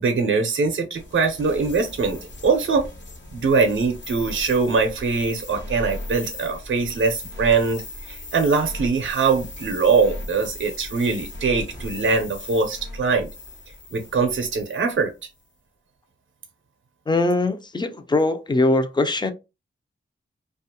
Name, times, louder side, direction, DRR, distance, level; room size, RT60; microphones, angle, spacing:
voice 1, 0.0-2.9 3.3-13.3 13.9-15.1, right 4 dB, 65° right, 0.5 m, -22 dB
sound 1, 0.9-15.0, left 1 dB, 60° left, 1.0 m, -37 dB
voice 2, 17.1-19.3, left 2 dB, 20° left, 0.4 m, -21 dB
2.4 x 2.3 x 2.7 m
wide cardioid pair, 80°, 21 cm